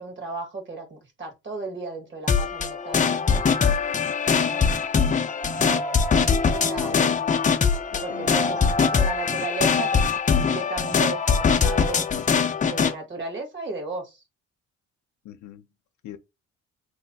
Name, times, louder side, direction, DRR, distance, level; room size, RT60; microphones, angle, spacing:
voice 1, 0.0-3.4 4.3-5.1 5.5-7.2 8.0-12.1 12.6-14.2, right 3 dB, 40° right, 1.5 m, -35 dB
sound 1, 2.3-12.9, left 6 dB, 25° left, 0.5 m, -22 dB
voice 2, 7.9-8.7 15.2-15.7 16.0-16.2, left 11 dB, 70° left, 0.6 m, -41 dB
3.0 x 2.1 x 4.0 m
cardioid pair, 90°, 30 cm